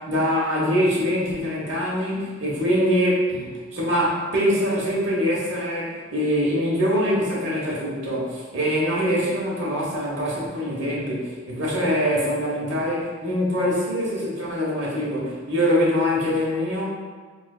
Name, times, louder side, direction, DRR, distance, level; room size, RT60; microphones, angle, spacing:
voice 1, 0.0-16.8, equal, 55° right, -6 dB, 1.2 m, -24 dB
5.9 x 2.4 x 2.3 m, 1.5 s
head